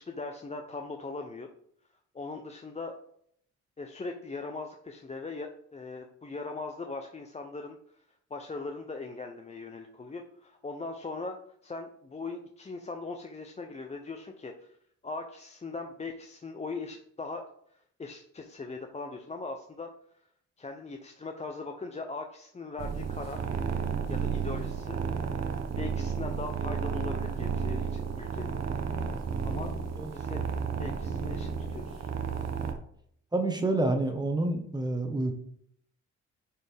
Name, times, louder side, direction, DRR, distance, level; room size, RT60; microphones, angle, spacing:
voice 1, 0.0-1.5 2.1-3.0 3.8-8.0 8.3-14.8 15.0-17.4 17.7-19.9 20.6-23.4 24.1-25.0 25.8-28.5 29.4-29.8 30.1-30.4 30.8-32.1, left 3 dB, 20° left, 3 dB, 0.7 m, -40 dB
sound 1, 22.8-32.7, right 6 dB, 60° right, 1.0 m, -32 dB
voice 2, 30.0-30.3 33.3-35.3, right 2 dB, 15° right, 5 dB, 1.3 m, -29 dB
9.3 x 4.2 x 3.5 m, 0.67 s
cardioid pair, 90°, 30 cm